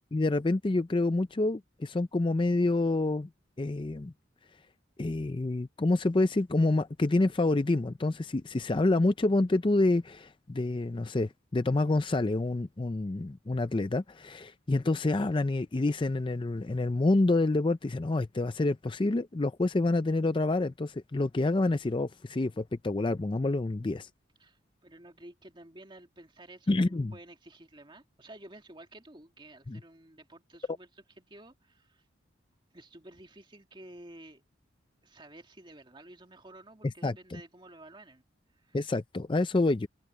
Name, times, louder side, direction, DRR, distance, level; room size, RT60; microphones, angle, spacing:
voice 1, 0.1-3.3 3.6-4.1 5.0-24.1 26.7-27.1 29.7-29.8 37.0-37.4 38.7-39.9, left 2 dB, 25° left, 0.5 m, -27 dB
voice 2, 24.4-32.0 32.7-34.4 35.0-38.2 38.5-38.8, right 1 dB, 25° right, 2.3 m, -52 dB
head